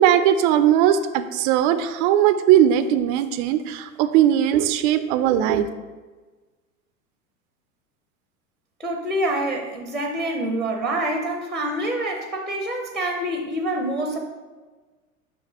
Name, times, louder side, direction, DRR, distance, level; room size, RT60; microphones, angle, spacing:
voice 1, 0.0-5.7, right 10 dB, 40° right, 10 dB, 0.4 m, -19 dB
voice 2, 8.8-14.2, right 1 dB, ahead, 3 dB, 0.6 m, -26 dB
5.4 x 3.3 x 5.5 m, 1.3 s
hypercardioid pair, 90°, 43 cm